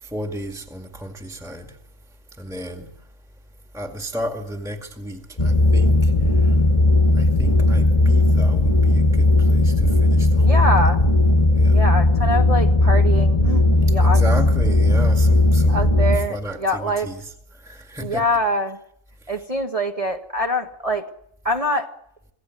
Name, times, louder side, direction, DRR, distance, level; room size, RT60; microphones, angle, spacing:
voice 1, 0.0-1.8 2.4-2.9 3.7-6.6 7.2-10.9 11.5-11.9 14.0-15.9 16.1-18.2 19.3-19.4, equal, ahead, 2.0 m, -33 dB
sound 1, 5.4-16.2, left 2 dB, 25° left, 1.9 m, -16 dB
voice 2, 10.4-11.0 11.7-14.2 15.7-17.1 18.0-18.8 19.3-21.1 21.4-21.9, equal, 25° right, 1.4 m, -24 dB
26.0 x 16.5 x 9.4 m
omnidirectional pair, 1.4 m